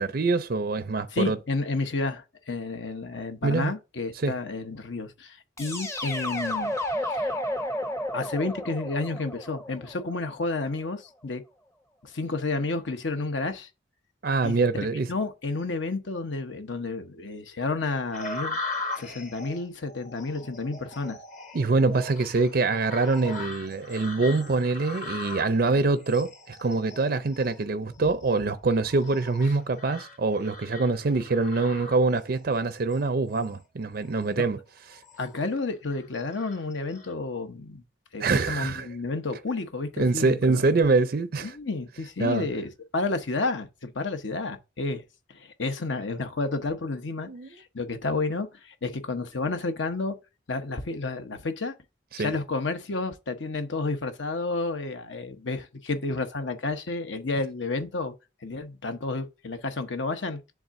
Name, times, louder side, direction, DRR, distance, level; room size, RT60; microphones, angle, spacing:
voice 1, 0.0-1.4 3.4-3.7 4.2-4.3 14.2-15.1 21.5-34.6 34.9-35.0 38.2-38.9 40.0-41.6 42.2-42.5 47.3-47.5 52.1-52.3, right 3 dB, 50° right, 0.4 m, -25 dB
voice 2, 1.1-6.8 7.1-7.3 8.1-11.4 12.0-13.7 14.4-18.6 19.0-21.2 34.4-34.5 35.2-37.8 38.1-40.6 41.4-45.0 45.3-50.1 50.5-51.7 52.2-58.1 58.4-60.4, left 3 dB, 70° left, 1.0 m, -31 dB
sound 1, 5.6-10.5, left 1 dB, 15° left, 0.7 m, -32 dB
sound 2, 18.1-32.4 32.9-33.5 34.0-34.3 34.8-35.5 35.9-37.1, left 2 dB, 40° left, 1.2 m, -40 dB
10.5 x 3.7 x 2.6 m
head